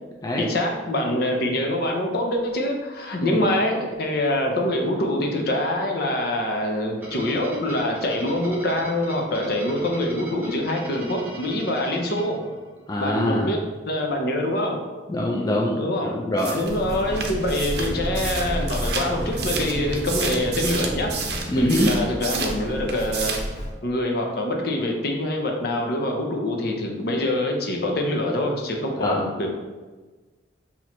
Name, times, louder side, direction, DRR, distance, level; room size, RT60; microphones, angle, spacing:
voice 1, 0.4-12.4 13.0-13.6 13.8-14.8 15.7-16.1 16.5-21.1 21.5-23.4 23.8-29.5, left 1 dB, 60° left, 1 dB, 0.8 m, -25 dB
Glitchy Guitar, 7.0-13.0, right 1 dB, 10° right, 0.8 m, -39 dB
voice 2, 12.9-13.5 15.1-15.8 16.1-16.6 21.5-21.9 29.0-29.2, left 1 dB, 20° left, -2 dB, 0.4 m, -23 dB
sound 1, 16.4-22.6 22.9-23.5, right 5 dB, 65° right, 0.6 m, -31 dB
sound 2, 16.6-23.7, equal, 40° left, 1.5 m, -31 dB
6.1 x 2.9 x 3.0 m, 1.3 s
head